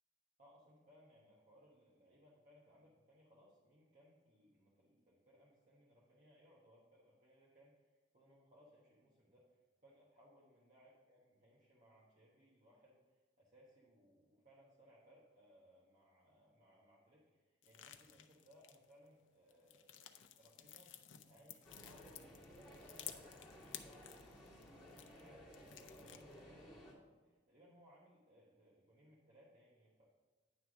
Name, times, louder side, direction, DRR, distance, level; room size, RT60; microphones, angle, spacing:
voice 1, 0.4-30.1, equal, 45° right, -6 dB, 1.3 m, -67 dB
sound 1, 17.6-19.1 19.5-25.3 25.5-26.4, left 11 dB, 90° left, 0.5 m, -55 dB
sound 2, 21.6-26.9, equal, 5° left, 2.0 m, -57 dB
9.6 x 3.4 x 6.1 m, 1.3 s
head